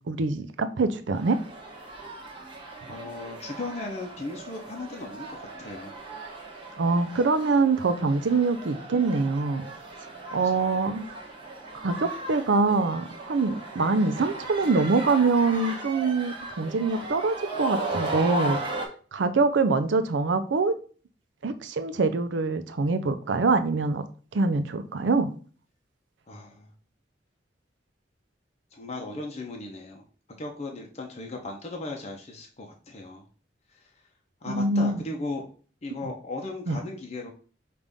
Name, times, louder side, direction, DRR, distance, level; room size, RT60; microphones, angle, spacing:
voice 1, 0.1-1.4 6.8-9.7 10.3-11.0 11.7-18.6 19.1-20.7 21.4-24.1 24.3-25.3 34.5-35.0 36.7-36.8, right 3 dB, 90° right, 10 dB, 0.5 m, -24 dB
sound 1, 1.1-18.9, right 2 dB, 30° right, 0.9 m, -37 dB
voice 2, 2.9-6.0 10.4-10.8 26.3-26.7 28.7-30.0 30.4-33.3 33.7-33.9 34.4-35.5 35.8-37.3, left 2 dB, 35° left, 1 dB, 0.6 m, -37 dB
5.3 x 2.5 x 3.4 m, 0.40 s
head